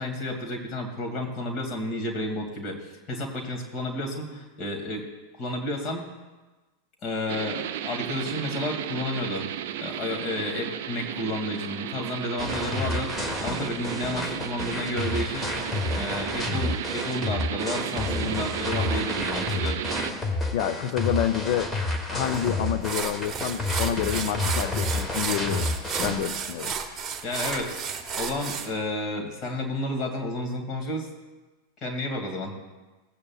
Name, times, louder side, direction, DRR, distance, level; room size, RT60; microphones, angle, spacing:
voice 1, 0.0-5.0 5.4-6.0 7.0-9.5 9.8-15.5 15.9-19.8 27.2-27.8 28.2-31.1 31.8-32.5, left 1 dB, 35° left, 2 dB, 2.4 m, -31 dB
sound 1, 7.3-20.1, right 11 dB, 50° right, 0.6 m, -34 dB
sound 2, 12.4-26.2, left 2 dB, 10° left, 1.4 m, -30 dB
voice 2, 20.5-21.7 22.1-25.7 26.0-26.8, left 10 dB, 50° left, 8 dB, 0.6 m, -28 dB
sound 3, 22.3-22.5 22.8-28.7, right 6 dB, 20° right, 1.3 m, -32 dB
17.0 x 8.7 x 2.4 m, 1.2 s
figure-of-eight pair, 90°, 0 cm